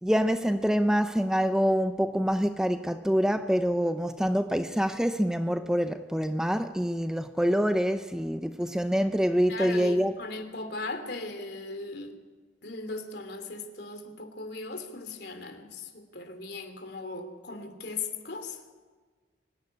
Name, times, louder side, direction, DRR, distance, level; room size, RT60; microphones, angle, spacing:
voice 1, 0.0-10.1, equal, 5° right, 0.6 m, -26 dB
voice 2, 9.5-12.1 12.6-18.6, left 3 dB, 60° left, 3.0 m, -38 dB
25.0 x 15.5 x 9.8 m
head